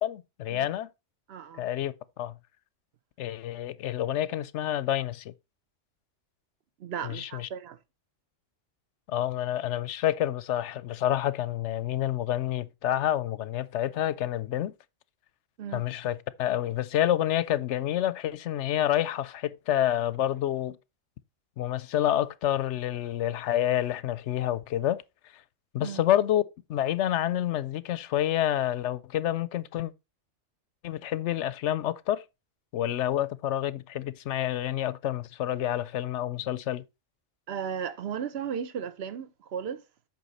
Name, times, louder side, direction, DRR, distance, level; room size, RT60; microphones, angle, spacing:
voice 1, 0.0-0.9 1.6-2.4 3.2-5.3 7.0-7.5 9.1-14.7 15.7-20.8 21.6-25.0 25.3-25.4 25.7-26.4 26.7-29.9 30.8-32.2 32.7-36.8, left 12 dB, 70° left, 0.9 m, -28 dB
voice 2, 1.3-1.6 6.8-7.8 15.6-15.8 25.8-26.0 37.5-39.8, right 7 dB, 55° right, 1.0 m, -35 dB
8.3 x 5.8 x 4.1 m
omnidirectional pair, 1.3 m